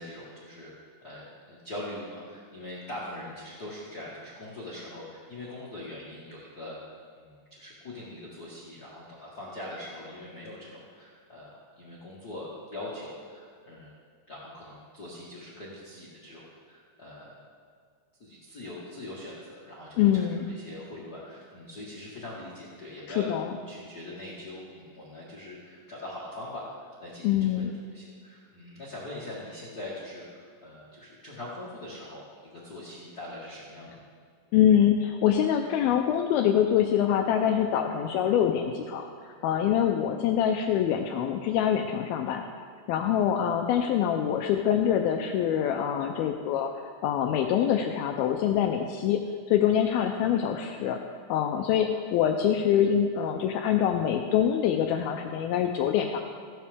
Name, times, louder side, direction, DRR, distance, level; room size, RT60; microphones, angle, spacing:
voice 1, 0.0-13.9 14.3-17.4 18.2-23.3 23.7-27.6 27.9-34.1 43.1-43.2 51.5-51.7, left 1 dB, 70° left, -7 dB, 0.9 m, -42 dB
voice 2, 20.0-20.5 23.2-23.5 27.2-27.7 34.5-42.4 42.9-46.7 47.0-49.2 49.5-51.0 51.3-56.2, left 9 dB, 90° left, 4 dB, 2.1 m, -25 dB
15.0 x 11.5 x 3.5 m, 2.2 s
omnidirectional pair, 5.0 m